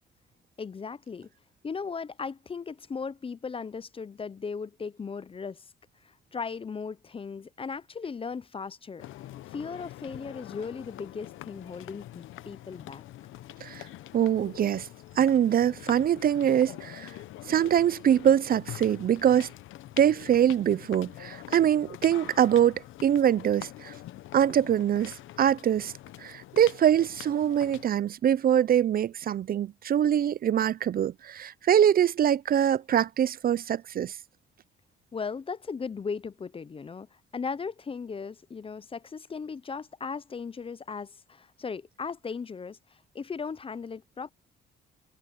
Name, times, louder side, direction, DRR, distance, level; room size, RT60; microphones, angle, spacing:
voice 1, 0.6-1.3 1.6-5.7 6.0-9.0 9.5-13.0 35.1-44.3, left 5 dB, 25° left, 0.5 m, -37 dB
sound 1, 9.0-27.9, left 14 dB, 80° left, 0.8 m, -45 dB
voice 2, 14.1-14.9 15.2-17.1 17.5-19.5 20.0-23.9 24.3-25.9 26.2-34.2, right 10 dB, 50° right, 0.5 m, -24 dB
cardioid pair, 90°, 20 cm